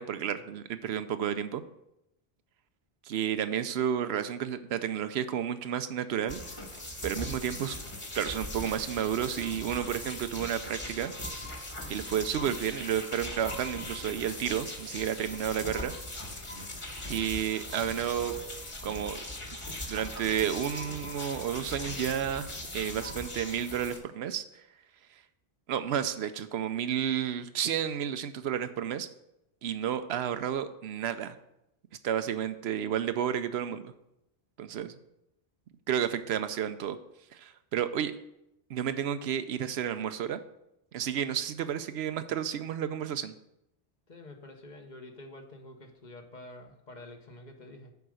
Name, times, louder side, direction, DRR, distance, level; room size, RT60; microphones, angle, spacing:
voice 1, 0.0-1.6 3.0-6.4 7.0-7.8 8.1-11.1 11.9-15.9 17.1-18.3 18.8-19.2 19.9-22.5 22.7-24.4 25.7-29.1 29.6-31.4 32.0-33.9 34.6-34.9 35.9-37.0 37.3-38.1 38.7-40.4 40.9-43.3, right 9 dB, 85° right, 11 dB, 0.9 m, -31 dB
sound 1, 6.3-24.0, left 1 dB, 30° left, 1.4 m, -40 dB
voice 2, 44.1-47.9, left 1 dB, 45° left, 4 dB, 1.1 m, -48 dB
7.1 x 4.9 x 6.4 m, 0.85 s
omnidirectional pair, 1.0 m